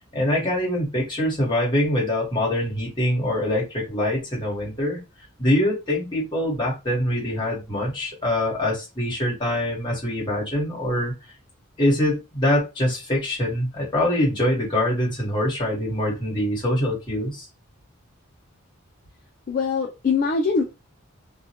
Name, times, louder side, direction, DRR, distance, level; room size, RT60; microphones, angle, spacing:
voice 1, 0.1-5.0 5.4-11.1 11.8-17.4, left 1 dB, 20° left, -4 dB, 1.1 m, -24 dB
voice 2, 19.5-20.6, left 5 dB, 40° left, 1 dB, 0.3 m, -22 dB
2.3 x 2.1 x 2.7 m, 0.26 s
head